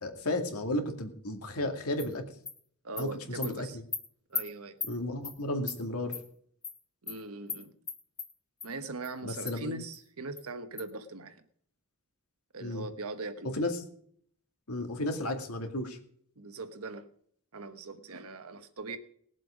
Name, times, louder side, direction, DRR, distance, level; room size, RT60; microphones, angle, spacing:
voice 1, 0.0-2.2 3.0-3.7 4.8-6.2 9.2-9.7 12.6-12.9 13.4-13.8 14.7-16.0, left 1 dB, 75° left, 2.3 m, -33 dB
Animal, 2.0-2.1 2.5-2.6 3.0-3.1 3.4-3.5 3.9-4.0 4.3-4.4 4.8-4.9 5.2-5.4 5.7-5.8 6.1-6.2 6.6-6.8 7.1-7.2 7.5-7.6 7.9-8.3 8.6-8.7 9.0-9.1 9.5-9.6 9.9-10.0 10.4-10.5 10.8-10.9, left 5 dB, 20° left, 2.2 m, -36 dB
voice 2, 2.8-3.8 4.3-4.8 7.0-7.7 8.6-11.4 12.5-13.5 16.4-17.1 17.5-19.0, right 3 dB, 70° right, 1.2 m, -40 dB
19.5 x 7.6 x 5.1 m
head